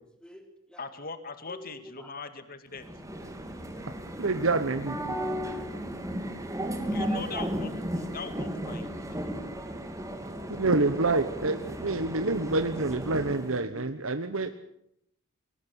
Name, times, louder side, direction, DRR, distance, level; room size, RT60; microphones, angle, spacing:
voice 1, 0.2-0.9 1.4-2.2 3.1-4.3 4.9-6.2 8.0-8.1 8.8-9.7, equal, 5° left, 5 dB, 3.6 m, -53 dB
voice 2, 0.8-2.9 6.9-9.4, left 3 dB, 45° left, 10 dB, 2.1 m, -40 dB
sound 1, 2.8-13.6, equal, 15° right, 2.6 m, -35 dB
voice 3, 4.2-5.0 10.5-14.5, right 3 dB, 80° right, 9 dB, 1.3 m, -27 dB
21.0 x 19.0 x 8.2 m, 0.73 s
head